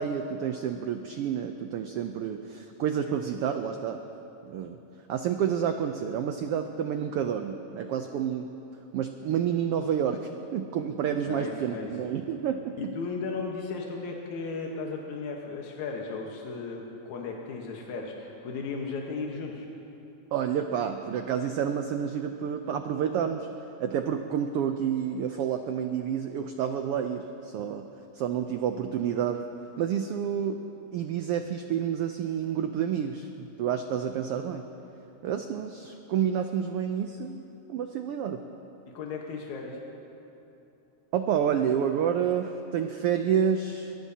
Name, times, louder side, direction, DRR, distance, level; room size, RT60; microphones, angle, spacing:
voice 1, 0.0-4.0 4.5-4.8 5.1-8.5 8.9-12.9 20.3-23.5 23.8-27.9 28.1-29.4 29.8-30.6 30.9-34.6 35.2-37.4 37.7-38.4 41.1-43.9, right 8 dB, 85° right, 6 dB, 1.3 m, -29 dB
voice 2, 11.3-11.9 12.8-19.7 38.9-39.8, left 4 dB, 75° left, -1 dB, 2.6 m, -35 dB
22.5 x 22.0 x 2.8 m, 3.0 s
omnidirectional pair, 3.3 m